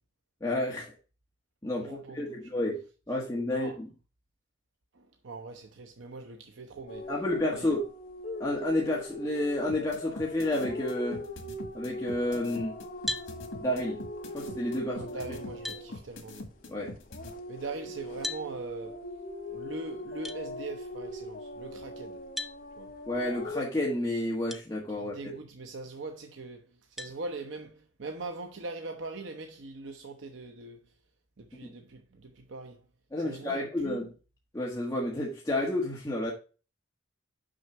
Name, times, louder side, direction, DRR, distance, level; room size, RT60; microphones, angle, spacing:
voice 1, 0.4-0.9 1.6-3.9 7.1-7.9 8.4-11.2 11.7-12.8 13.6-14.0 14.3-15.1 16.7-17.0 23.1-25.2 31.6-31.7 33.1-34.1 34.5-36.3, left 1 dB, 15° left, 1.5 m, -30 dB
voice 2, 1.8-2.4 3.5-3.8 4.9-7.1 7.5-7.7 14.8-16.4 17.5-19.0 19.5-22.2 22.8-22.9 25.0-26.7 27.0-30.8 31.4-32.8 33.2-34.0, right 3 dB, 70° right, 0.8 m, -41 dB
sound 1, 6.9-16.7 17.0-23.6, left 1 dB, 45° left, 1.0 m, -41 dB
sound 2, 9.7-17.3, left 1 dB, 85° left, 1.8 m, -43 dB
sound 3, 13.1-13.3 15.0-15.1 15.6-15.9 18.2-18.5 20.2-20.4 22.4-22.6 24.5-24.6 25.3-25.4 27.0-27.2, left 2 dB, ahead, 0.4 m, -35 dB
6.3 x 5.7 x 4.4 m
head